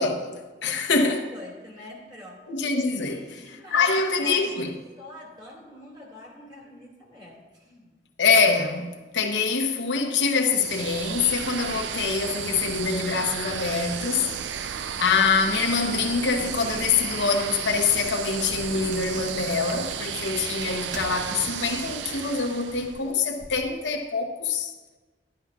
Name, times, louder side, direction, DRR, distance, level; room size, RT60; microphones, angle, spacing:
voice 1, 0.0-1.2 2.5-3.2 3.7-4.7 8.2-14.6 15.0-24.7, left 5 dB, 85° left, 0.9 m, -25 dB
voice 2, 0.7-1.0 1.3-2.5 3.0-8.0, left 1 dB, 25° right, 2.3 m, -45 dB
sound 1, 10.4-23.1, right 8 dB, 80° right, 0.4 m, -33 dB
sound 2, 18.9-21.4 21.7-23.9, right 3 dB, 45° right, 0.9 m, -45 dB
11.5 x 11.5 x 2.4 m
head